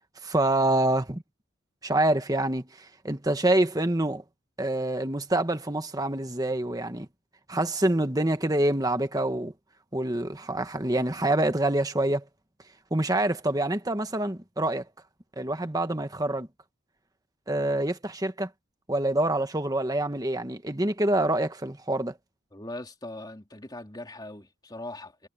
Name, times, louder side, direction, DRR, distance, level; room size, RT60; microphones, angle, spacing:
voice 1, 0.2-1.2 1.8-4.2 4.6-7.1 7.5-9.5 9.9-12.2 12.9-14.8 15.4-16.5 17.5-18.5 18.9-22.1, right 1 dB, 20° right, 1.4 m, -26 dB
voice 2, 22.5-25.3, left 2 dB, 20° left, 3.3 m, -40 dB
head